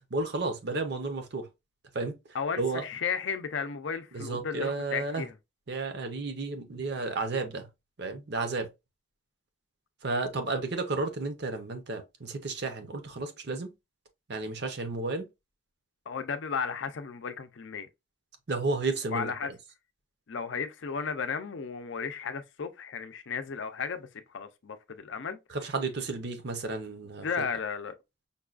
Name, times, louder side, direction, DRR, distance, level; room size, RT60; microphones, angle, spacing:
voice 1, 0.1-1.5 1.9-2.1 2.6-2.8 4.1-5.2 5.7-7.7 8.0-8.7 10.0-13.7 14.3-15.3 18.5-19.3 25.6-27.3, right 3 dB, 55° right, 0.7 m, -32 dB
voice 2, 2.3-5.3 16.1-17.9 19.1-19.5 20.3-25.4 27.2-28.0, left 6 dB, 65° left, 0.5 m, -34 dB
5.3 x 2.3 x 2.4 m
head